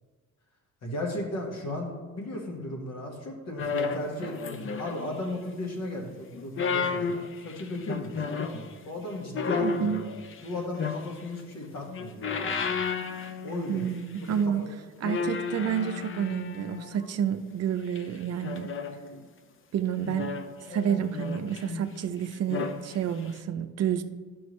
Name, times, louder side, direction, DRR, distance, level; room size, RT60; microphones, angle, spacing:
voice 1, 0.8-12.8 13.4-13.9 14.2-14.7, left 1 dB, 60° left, 0 dB, 1.7 m, -36 dB
sound 1, 3.6-5.3 6.3-8.6 9.3-11.4 11.8-13.9 14.2-14.4 15.0-17.1 18.0-19.2 20.0-22.0 22.3-22.8 23.3-23.4, left 5 dB, 45° left, 0.6 m, -33 dB
voice 2, 9.6-10.0 13.7-14.6 15.0-18.7 19.7-20.3 20.7-24.0, right 8 dB, 55° right, 9 dB, 0.5 m, -29 dB
9.5 x 6.1 x 3.2 m, 1.4 s
cardioid pair, 90°, 30 cm